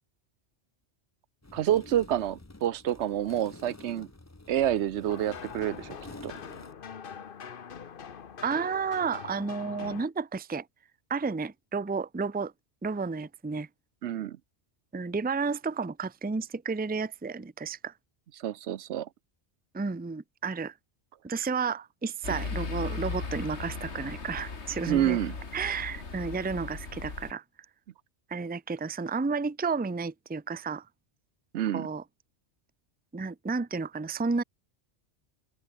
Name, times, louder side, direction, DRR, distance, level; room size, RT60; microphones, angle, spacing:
sound 1, 1.4-6.7, left 2 dB, 15° left, 1.0 m, -49 dB
voice 1, 1.5-4.1 4.5-6.0 6.2-6.3 14.0-14.4 18.4-19.1 24.9-25.3 31.5-31.9, right 11 dB, 80° right, 1.0 m, -28 dB
sound 2, 5.1-10.1, left 7 dB, 55° left, 1.1 m, -43 dB
voice 2, 8.4-10.7 11.1-12.5 12.8-13.7 14.9-17.9 19.7-20.7 21.2-25.2 25.5-27.4 28.3-30.8 31.7-32.0 33.1-34.4, right 4 dB, 10° right, 0.5 m, -32 dB
sound 3, 22.2-27.3, left 4 dB, 75° left, 2.6 m, -37 dB
open air
omnidirectional pair, 1.1 m